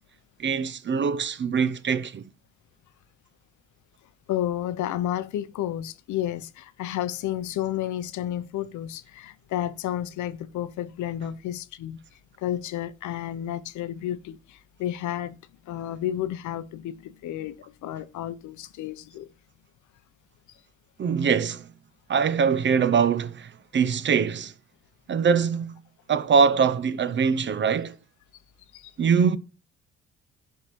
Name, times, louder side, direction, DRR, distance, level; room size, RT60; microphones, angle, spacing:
voice 1, 0.4-2.3 21.0-21.7 22.1-24.5 25.1-25.7 26.1-28.0 29.0-29.4, right 6 dB, 40° right, 0.5 m, -23 dB
voice 2, 4.3-12.0 12.4-15.3 15.6-17.6 17.8-19.3 28.7-28.9, left 12 dB, 75° left, 0.6 m, -31 dB
11.0 x 3.7 x 3.1 m
cardioid pair, 90°, 30 cm